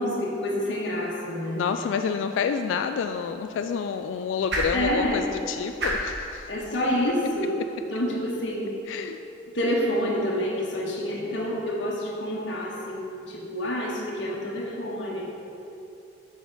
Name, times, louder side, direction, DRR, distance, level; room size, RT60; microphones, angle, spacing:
voice 1, 0.0-1.6 4.7-5.3 6.5-7.6 7.9-8.7 9.5-15.2, equal, 70° left, -4 dB, 1.4 m, -28 dB
voice 2, 1.5-6.5 8.9-9.3, left 6 dB, 90° left, 7 dB, 0.3 m, -28 dB
sound 1, 2.7-8.9, equal, 65° right, 1.6 m, -36 dB
8.2 x 5.8 x 4.7 m, 2.9 s
head